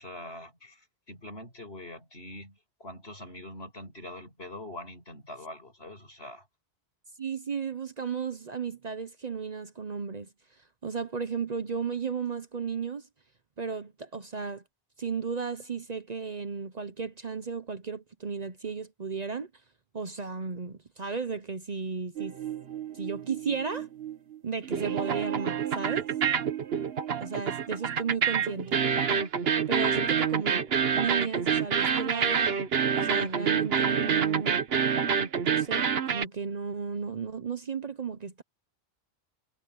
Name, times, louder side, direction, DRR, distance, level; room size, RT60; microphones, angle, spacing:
voice 1, 0.0-6.5, left 1 dB, 75° left, 6.8 m, -44 dB
voice 2, 7.2-10.3 10.8-13.1 13.6-14.6 15.0-19.5 19.9-22.4 22.9-23.9 24.4-26.1 27.2-28.8 29.7-32.5 32.9-34.6 35.4-38.4, right 5 dB, 45° right, 0.9 m, -34 dB
sound 1, 22.2-24.4 24.6-36.2, right 7 dB, 70° right, 1.2 m, -27 dB
omnidirectional pair, 1.1 m